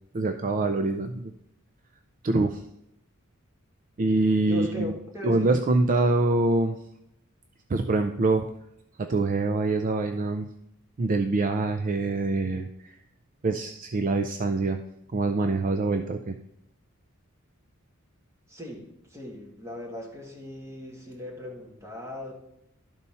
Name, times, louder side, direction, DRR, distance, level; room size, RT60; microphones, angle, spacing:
voice 1, 0.1-1.3 2.2-2.6 4.0-4.9 5.2-6.8 7.7-8.5 9.0-10.5 11.0-12.9 13.4-14.8 15.1-16.4, right 3 dB, 40° right, 8 dB, 0.4 m, -25 dB
voice 2, 4.5-5.6 18.5-22.3, equal, 15° right, -1 dB, 1.7 m, -38 dB
12.0 x 4.2 x 5.5 m, 0.81 s
head